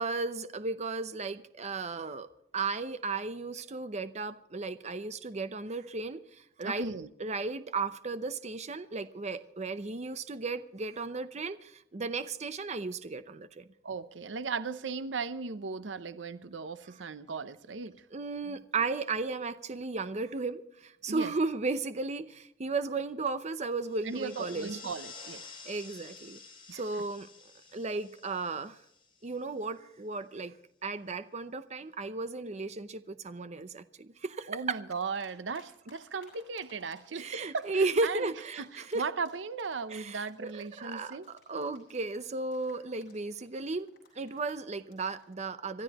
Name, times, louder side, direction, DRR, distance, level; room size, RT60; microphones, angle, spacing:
voice 1, 0.0-2.3 2.5-6.2 6.6-6.9 7.2-13.7 18.1-24.8 25.7-26.4 26.7-27.3 27.7-28.8 29.2-30.5 30.8-34.8 37.2-39.0 39.9-40.5 40.8-41.2 41.5-43.9 44.2-45.8, right 3 dB, 40° right, 0.7 m, -34 dB
voice 2, 6.6-7.1 13.8-18.0 21.1-21.3 24.0-25.4 26.7-26.8 34.5-41.3, right 4 dB, 80° right, 0.7 m, -37 dB
sound 1, 23.8-29.6, left 4 dB, 30° left, 5.1 m, -50 dB
sound 2, 34.9-35.6 35.9-45.3, left 5 dB, 55° left, 7.8 m, -60 dB
26.5 x 13.5 x 3.0 m
head